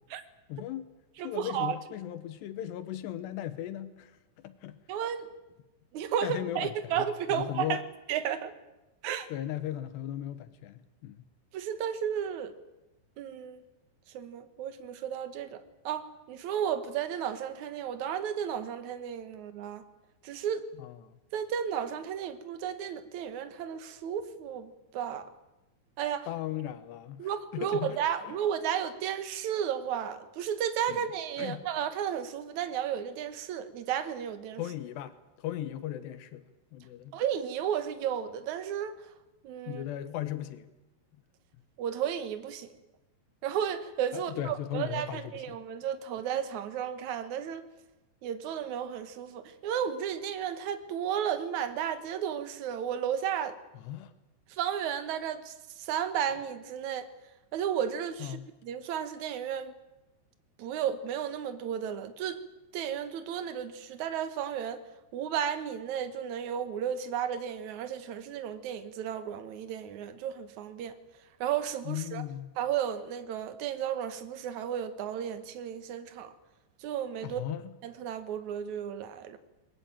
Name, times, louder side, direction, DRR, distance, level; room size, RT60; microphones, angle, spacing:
voice 1, 0.5-0.9 1.2-4.8 6.2-7.8 9.3-11.2 20.8-21.2 26.3-28.0 28.3-28.4 30.9-31.0 31.4-31.6 34.6-36.5 36.7-37.1 39.7-40.7 44.1-45.6 53.8-54.1 58.2-58.5 71.9-72.5 77.2-77.7, left 12 dB, 75° left, 12 dB, 3.1 m, -37 dB
voice 2, 1.2-1.8 4.9-5.3 5.9-7.8 8.1-8.5 9.0-9.3 11.5-12.5 13.2-13.6 14.1-19.8 20.2-20.7 21.3-25.3 26.0-26.3 27.2-34.6 37.1-38.9 39.4-39.8 41.8-42.7 43.4-47.6 48.2-53.6 54.5-57.1 57.5-58.4 58.6-59.7 60.6-62.4 62.7-64.8 65.1-71.0 71.4-72.2 72.6-76.3 76.8-77.4 77.8-79.4, right 9 dB, 65° right, 11 dB, 2.0 m, -33 dB
21.0 x 20.5 x 9.0 m, 1.0 s
omnidirectional pair, 5.1 m